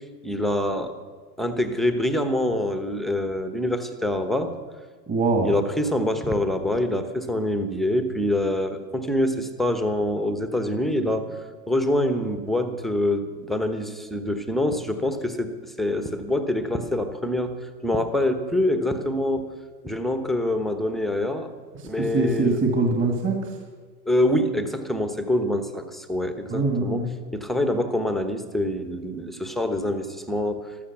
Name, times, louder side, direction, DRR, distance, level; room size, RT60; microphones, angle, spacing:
voice 1, 0.2-0.9 1.4-4.5 5.4-11.3 11.7-19.5 19.8-21.5 21.8-22.6 24.1-27.1 27.3-30.7, left 1 dB, ahead, 8 dB, 0.9 m, -25 dB
voice 2, 5.1-5.5 21.8-23.5 26.5-27.1, right 3 dB, 25° right, 2 dB, 2.0 m, -23 dB
14.5 x 13.0 x 5.9 m, 1.5 s
hypercardioid pair, 110°, 50 cm